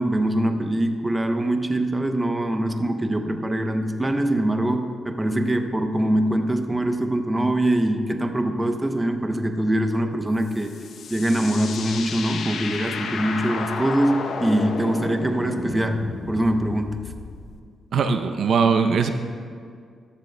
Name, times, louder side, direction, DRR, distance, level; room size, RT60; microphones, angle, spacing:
voice 1, 0.0-10.7 11.1-17.0, right 1 dB, 15° right, 6 dB, 0.7 m, -23 dB
sound 1, 10.4-17.6, left 4 dB, 70° left, 0.7 m, -32 dB
voice 2, 17.9-19.1, right 5 dB, 70° right, 8 dB, 0.5 m, -20 dB
15.0 x 11.5 x 2.2 m, 2.2 s
cardioid pair, 110°, 0 cm